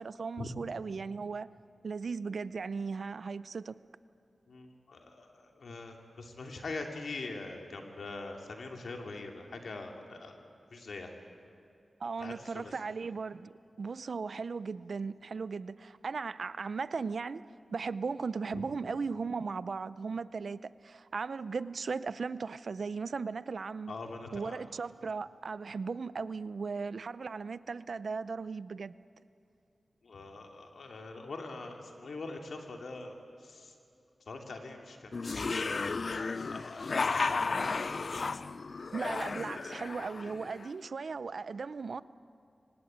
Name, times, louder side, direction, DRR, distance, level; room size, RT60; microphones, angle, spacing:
voice 1, 0.0-1.5 1.8-3.7 12.0-24.0 24.3-29.0 38.9-42.0, right 4 dB, 75° right, 0.6 m, -37 dB
voice 2, 4.5-10.4 10.7-11.1 12.2-12.7 18.5-18.6 23.9-24.6 30.0-33.1 33.4-33.7 34.3-35.3 36.0-37.6, left 3 dB, 80° left, 2.7 m, -43 dB
sound 1, 35.1-40.7, left 4 dB, 65° left, 0.5 m, -34 dB
24.0 x 19.0 x 8.8 m
cardioid pair, 55°, 0 cm